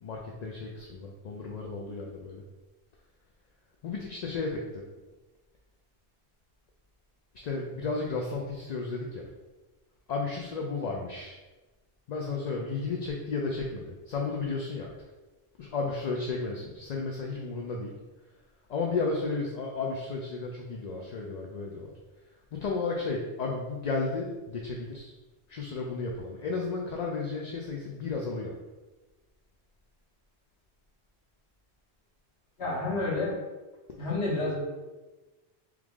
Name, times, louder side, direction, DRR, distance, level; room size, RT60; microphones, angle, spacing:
voice 1, 0.0-2.4 3.8-4.8 7.4-9.3 10.1-11.4 12.1-14.9 15.6-17.9 18.7-21.9 22.5-25.1 25.5-28.5, left 3 dB, 55° left, -1 dB, 0.5 m, -33 dB
voice 2, 32.6-33.4 34.0-34.6, left 2 dB, 85° left, -5 dB, 1.6 m, -29 dB
3.6 x 3.2 x 3.6 m, 1.2 s
omnidirectional pair, 1.1 m